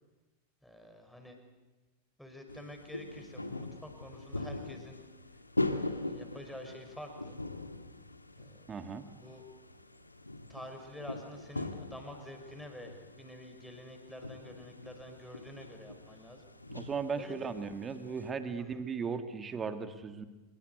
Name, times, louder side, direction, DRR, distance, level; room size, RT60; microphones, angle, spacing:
voice 1, 0.6-1.4 2.2-5.0 5.7-7.4 8.4-9.4 10.5-16.4 17.2-17.5 18.6-18.8, left 1 dB, ahead, 4 dB, 5.8 m, -48 dB
sound 1, 2.5-18.3, left 2 dB, 85° left, 1.8 m, -41 dB
voice 2, 8.7-9.0 16.7-20.2, right 5 dB, 20° right, 9 dB, 2.3 m, -37 dB
26.5 x 24.5 x 8.3 m, 1.2 s
figure-of-eight pair, 90°, 0 cm